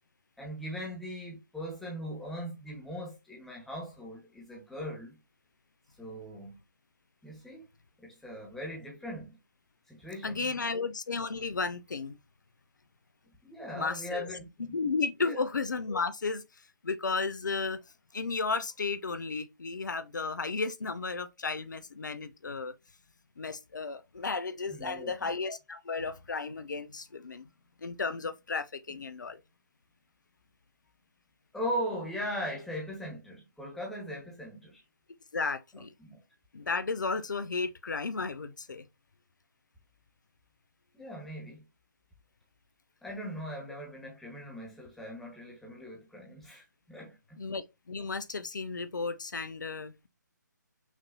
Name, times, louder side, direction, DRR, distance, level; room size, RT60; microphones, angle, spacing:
voice 1, 0.4-5.2 6.0-6.6 7.2-7.7 8.0-9.4 9.9-10.5 13.4-14.7 15.2-15.4 24.7-25.3 31.5-34.8 36.0-36.2 40.9-41.6 43.0-47.4, equal, ahead, 1.4 m, -39 dB
voice 2, 10.2-12.2 13.7-14.3 14.7-16.4 16.8-17.8 18.1-22.7 23.4-27.5 27.8-29.4 35.3-35.9 36.5-38.9 47.4-50.1, left 4 dB, 70° left, 0.7 m, -34 dB
6.0 x 2.9 x 2.6 m
figure-of-eight pair, 145°, 10 cm